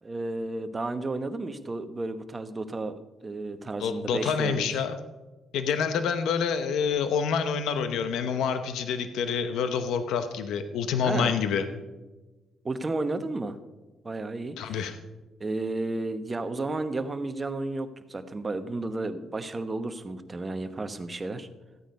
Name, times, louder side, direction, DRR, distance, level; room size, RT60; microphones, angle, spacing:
voice 1, 0.0-4.7 11.0-11.3 12.6-13.6 14.0-14.9 15.4-21.5, right 2 dB, 25° right, 10 dB, 1.0 m, -32 dB
voice 2, 3.8-5.0 5.5-11.6 14.6-14.9, left 6 dB, 80° left, 9 dB, 0.8 m, -27 dB
14.0 x 8.9 x 5.3 m, 1.2 s
cardioid pair, 90°, 0 cm